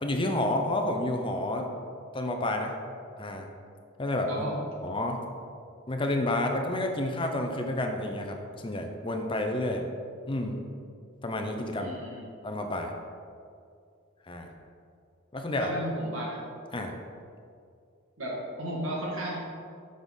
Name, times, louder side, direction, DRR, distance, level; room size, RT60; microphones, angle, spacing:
voice 1, 0.0-1.7 2.1-2.7 3.2-3.5 4.0-4.5 4.8-5.2 5.9-9.9 10.3-10.6 11.2-11.9 12.4-12.9 14.3-14.5 15.3-15.7 16.7-17.0, left 1 dB, 25° left, 3 dB, 0.6 m, -30 dB
voice 2, 4.3-4.6 11.8-12.2 15.5-16.4 18.2-19.4, equal, 75° right, -4 dB, 2.1 m, -34 dB
6.4 x 6.1 x 5.3 m, 2.4 s
head